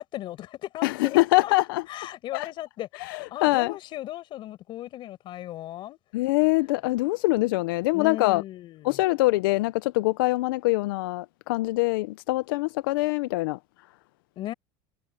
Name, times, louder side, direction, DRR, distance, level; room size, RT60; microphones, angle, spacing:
voice 1, 0.0-1.5 1.9-2.9 3.3-6.0 7.9-9.0 14.4-14.5, left 14 dB, 45° left, 4.9 m, -36 dB
voice 2, 0.8-1.8 2.3-2.5 2.9-3.8 6.1-8.4 8.8-13.6, left 21 dB, 85° left, 0.5 m, -24 dB
supercardioid pair, 135°, 11 cm